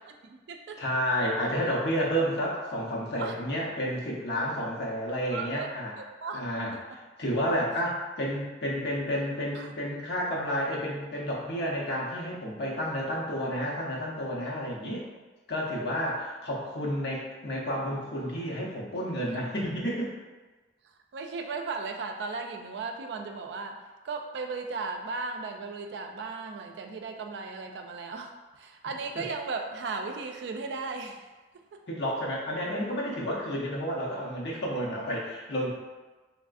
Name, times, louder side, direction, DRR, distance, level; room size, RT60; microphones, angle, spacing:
voice 1, 0.2-0.8 3.2-3.3 5.3-5.7 6.0-6.4 6.7-6.8 9.5-9.7 17.0-17.1 21.1-31.3 31.7-31.8, right 4 dB, 70° right, 4 dB, 0.3 m, -36 dB
voice 2, 0.8-5.9 6.3-15.1 15.5-20.1 29.2-29.3 31.9-35.7, equal, 70° left, -4 dB, 0.7 m, -31 dB
3.3 x 2.4 x 2.4 m, 1.2 s
head